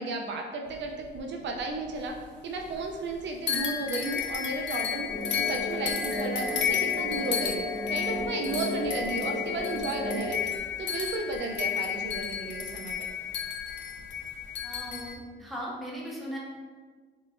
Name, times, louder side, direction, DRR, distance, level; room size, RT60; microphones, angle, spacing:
voice 1, 0.0-2.1 2.4-5.1 5.3-7.6 7.9-10.5 10.8-13.1, right 3 dB, 65° right, 2 dB, 0.5 m, -34 dB
sound 1, 0.7-2.2 2.5-3.2 3.5-15.2, left 8 dB, 65° left, 0.5 m, -32 dB
sound 2, 5.1-10.2, left 1 dB, 90° left, 0.9 m, -34 dB
voice 2, 14.6-16.4, equal, ahead, -6 dB, 1.2 m, -38 dB
4.0 x 3.7 x 2.5 m, 1.5 s
cardioid pair, 90°, 20 cm